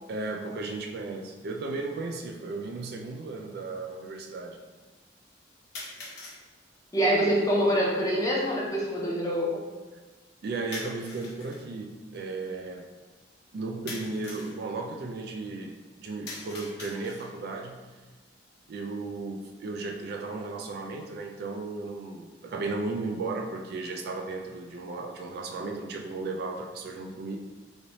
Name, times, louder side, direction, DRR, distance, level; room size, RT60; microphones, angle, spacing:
voice 1, 0.1-4.6 10.4-12.9 13.5-17.8 18.7-27.4, right 3 dB, 55° right, 2 dB, 0.3 m, -35 dB
sound 1, 5.7-6.4 10.7-11.6 13.9-14.6 16.3-17.4, left 2 dB, 60° left, 0.8 m, -42 dB
voice 2, 6.9-9.6, equal, 20° left, -4 dB, 0.6 m, -25 dB
3.2 x 2.6 x 2.9 m, 1.3 s
head